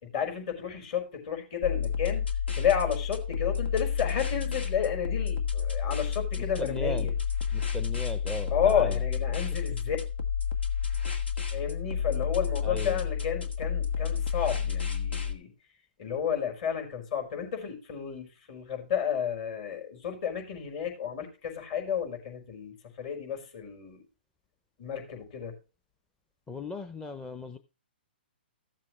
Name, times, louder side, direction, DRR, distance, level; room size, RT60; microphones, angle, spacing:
voice 1, 0.0-2.2 2.6-7.1 8.5-10.0 11.5-15.5 16.0-24.0 24.8-25.5, left 8 dB, 45° left, 3 dB, 5.2 m, -31 dB
sound 1, 1.6-15.3, left 7 dB, 90° left, 1.9 m, -30 dB
voice 2, 6.4-7.1 7.5-9.0 12.6-13.0 26.5-27.6, left 2 dB, 10° left, 8 dB, 0.6 m, -37 dB
15.0 x 7.5 x 3.2 m, 0.32 s
hypercardioid pair, 135°, 6 cm